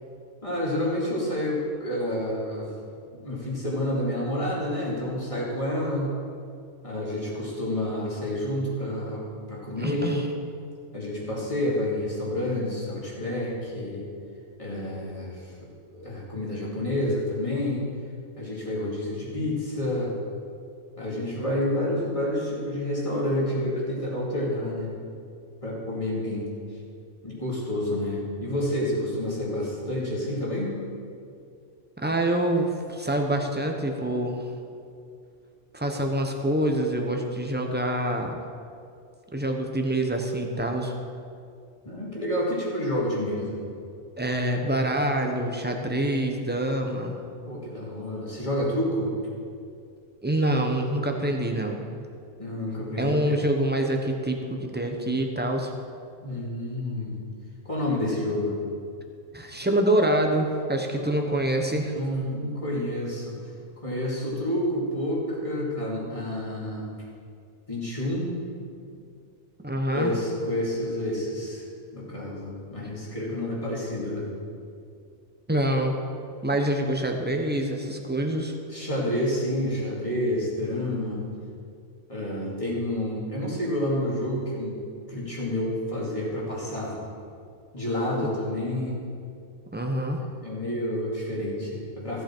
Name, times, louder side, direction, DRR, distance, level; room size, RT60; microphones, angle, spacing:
voice 1, 0.4-2.7 3.2-6.1 6.8-9.2 9.5-10.2 10.9-14.1 14.6-15.4 15.9-17.8 18.4-20.1 21.0-24.9 25.6-26.5 27.2-30.8 41.8-43.6 47.4-49.1 52.4-53.4 56.2-57.1 57.6-58.6 61.0-61.1 61.9-63.3 63.8-66.9 67.7-68.3 69.9-71.6 71.9-74.3 78.7-81.3 82.1-84.8 85.1-87.0 87.7-89.0 89.9-90.1 90.4-92.2, left 1 dB, 25° left, -5 dB, 2.5 m, -29 dB
voice 2, 9.8-10.3 32.0-34.5 35.7-38.4 39.3-40.9 44.2-47.1 50.2-51.8 53.0-55.7 59.3-61.9 69.6-70.1 75.5-75.9 76.4-78.5 89.7-90.2, right 1 dB, 10° right, 3 dB, 0.9 m, -26 dB
15.0 x 7.9 x 4.5 m, 2.4 s
omnidirectional pair, 1.2 m